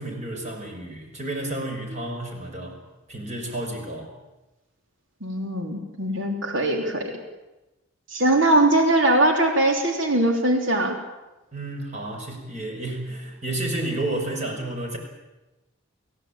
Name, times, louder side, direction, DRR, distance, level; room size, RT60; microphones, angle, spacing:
voice 1, 0.0-2.8 3.1-4.1 11.5-15.0, right 1 dB, 35° right, 2 dB, 5.9 m, -31 dB
voice 2, 5.2-7.1 8.1-11.0, right 1 dB, 65° right, 2 dB, 3.4 m, -21 dB
29.0 x 16.0 x 8.9 m, 1.1 s
head